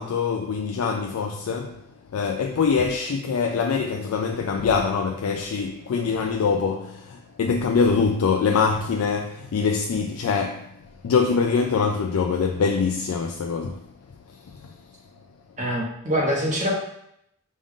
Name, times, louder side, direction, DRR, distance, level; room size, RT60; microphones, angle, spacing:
voice 1, 0.0-1.8 2.1-10.7 11.0-13.8 14.5-14.7, left 5 dB, 70° left, 0.3 m, -24 dB
voice 2, 15.6-16.7, equal, 35° right, 1.1 m, -24 dB
5.2 x 2.4 x 3.6 m
head